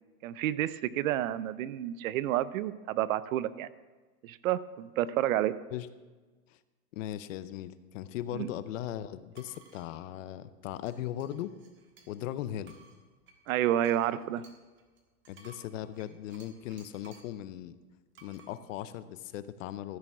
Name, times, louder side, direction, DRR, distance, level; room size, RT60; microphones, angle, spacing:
voice 1, 0.2-3.7 4.2-5.5 8.3-8.5 13.5-14.4, right 12 dB, 60° right, 17 dB, 0.6 m, -30 dB
voice 2, 6.9-11.5 12.1-12.8 15.3-17.8 18.2-20.0, left 12 dB, 55° left, 14 dB, 0.7 m, -38 dB
sound 1, 9.3-9.9 10.9-12.3 12.6-17.4 18.1-18.5, right 5 dB, 25° right, 1.5 m, -58 dB
14.5 x 6.8 x 6.1 m, 1.3 s
supercardioid pair, 145°, 47 cm